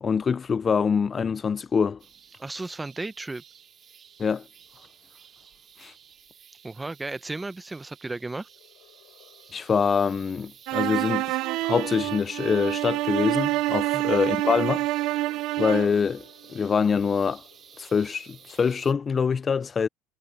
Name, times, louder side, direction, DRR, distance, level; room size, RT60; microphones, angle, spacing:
voice 1, 0.0-2.0 4.2-4.4 5.8-5.9 9.5-11.4 11.6-14.9 15.6-16.2 16.5-17.4 17.8-19.9, left 6 dB, 25° left, 0.4 m, -24 dB
sound 1, 1.6-18.9, left 25 dB, 75° left, 4.0 m, -63 dB
sound 2, 2.0-18.9, right 8 dB, 35° right, 4.0 m, -53 dB
voice 2, 2.4-3.4 6.6-8.5 13.9-14.0, right 2 dB, 10° right, 0.7 m, -34 dB
sound 3, 10.7-16.0, right 18 dB, 65° right, 0.4 m, -27 dB
cardioid pair, 135°, 0 cm